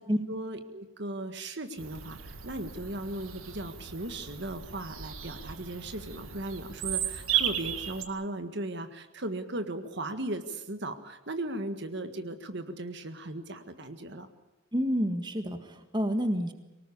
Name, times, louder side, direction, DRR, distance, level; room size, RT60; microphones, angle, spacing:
voice 1, 0.3-14.3, right 1 dB, 55° right, 8 dB, 1.7 m, -37 dB
Bird vocalization bird call bird song, 1.8-8.0, right 10 dB, 80° right, 2.0 m, -35 dB
voice 2, 14.7-16.5, equal, 20° right, 7 dB, 1.7 m, -28 dB
24.5 x 19.0 x 8.5 m, 1.0 s
head